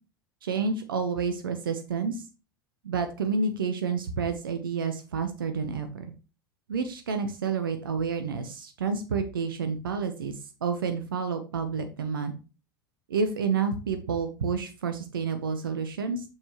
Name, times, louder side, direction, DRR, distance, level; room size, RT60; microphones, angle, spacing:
voice 1, 0.4-2.2 2.8-6.1 6.7-10.3 10.6-12.3 13.1-16.2, right 5 dB, 75° right, 8 dB, 0.9 m, -29 dB
6.7 x 5.8 x 2.9 m, 0.33 s
figure-of-eight pair, 80°, 12 cm